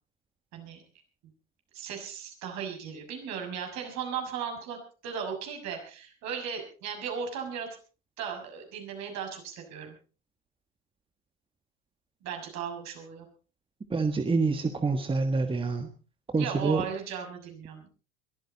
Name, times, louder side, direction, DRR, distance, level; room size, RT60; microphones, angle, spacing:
voice 1, 0.5-0.8 1.7-7.7 8.2-10.0 12.2-13.3 16.4-17.9, right 7 dB, 50° right, 3 dB, 6.7 m, -36 dB
voice 2, 13.9-15.9 16.3-16.8, right 4 dB, 15° right, 8 dB, 1.6 m, -26 dB
22.5 x 14.0 x 4.1 m, 0.37 s
hypercardioid pair, 80°, 35 cm